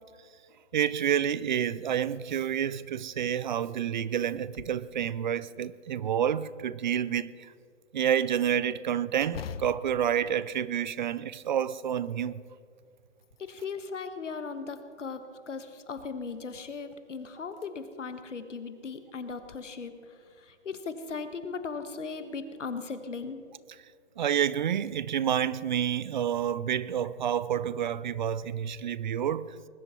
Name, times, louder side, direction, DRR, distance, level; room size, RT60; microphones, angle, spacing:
voice 1, 0.7-7.3 7.9-12.4 24.2-29.5, right 9 dB, 40° right, 0.4 m, -29 dB
sound 1, 4.3-4.9 5.3-5.4 6.0-6.8 9.2-11.2 11.6-12.3 12.9-13.8 14.7-15.4 16.8-16.9 17.5-17.7 18.1-18.2 19.3-19.6, left 7 dB, 55° left, 0.8 m, -45 dB
voice 2, 13.4-23.4, left 4 dB, 85° left, 1.5 m, -38 dB
20.5 x 12.0 x 4.4 m
hypercardioid pair, 140°, 36 cm